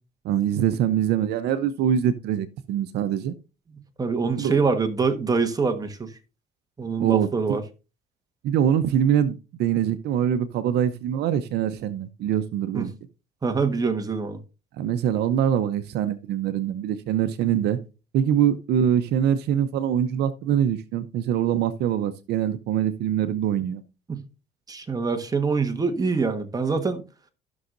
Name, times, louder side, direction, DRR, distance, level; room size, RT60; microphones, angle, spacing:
voice 1, 0.2-3.3 4.4-4.6 7.0-7.6 8.4-12.9 14.8-17.8 18.1-23.8, right 9 dB, 75° right, 0.7 m, -24 dB
voice 2, 4.0-6.1 6.8-7.6 12.7-12.9 13.4-14.4 24.1-24.2 24.7-27.0, right 4 dB, 20° right, 1.3 m, -24 dB
14.0 x 6.3 x 2.6 m
cardioid pair, 110°, 17 cm